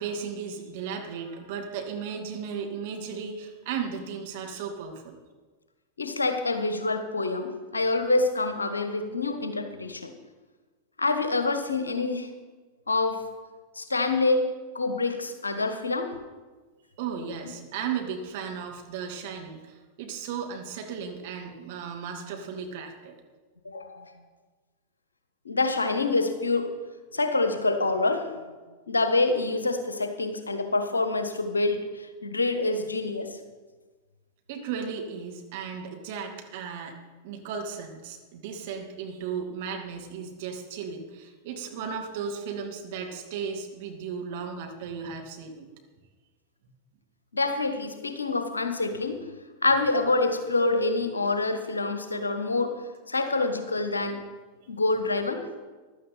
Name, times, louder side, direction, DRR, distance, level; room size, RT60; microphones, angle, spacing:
voice 1, 0.0-5.2 17.0-23.1 34.5-37.0 37.2-45.7, right 6 dB, 50° right, 3 dB, 2.3 m, -35 dB
voice 2, 6.0-10.1 11.0-12.3 12.9-13.3 13.8-16.2 23.6-24.1 25.4-26.7 27.1-28.3 28.9-33.3 47.3-49.2 49.6-52.8 53.1-54.2 54.7-55.4, left 3 dB, 75° left, 8 dB, 1.3 m, -26 dB
15.0 x 12.0 x 4.4 m, 1.3 s
figure-of-eight pair, 90°, 0 cm